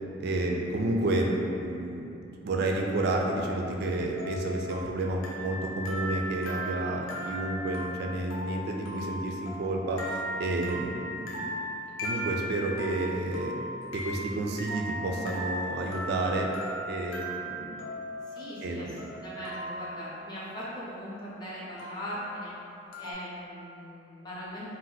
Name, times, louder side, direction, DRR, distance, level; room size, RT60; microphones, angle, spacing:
voice 1, 0.2-2.2 2.4-11.5 12.0-13.5 13.9-16.5 16.9-17.8 18.6-19.0, right 2 dB, 55° right, 0 dB, 0.3 m, -30 dB
sound 1, 3.7-20.1 21.8-22.3 22.9-23.1, equal, 85° left, 0.6 m, -38 dB
voice 2, 6.6-7.0 7.2-7.4 18.3-22.6 23.0-24.7, equal, 20° left, -8 dB, 0.5 m, -40 dB
2.6 x 2.1 x 3.9 m, 2.8 s
head